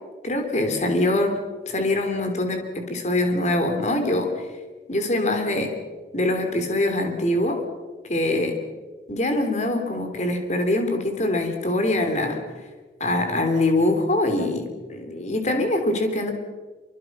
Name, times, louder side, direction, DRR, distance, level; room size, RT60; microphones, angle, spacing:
voice 1, 0.2-1.4 1.7-4.3 4.9-5.7 6.1-7.6 8.1-8.6 9.1-12.4 13.0-16.3, left 1 dB, 40° left, 5 dB, 3.2 m, -23 dB
27.0 x 24.5 x 6.1 m, 1.4 s
head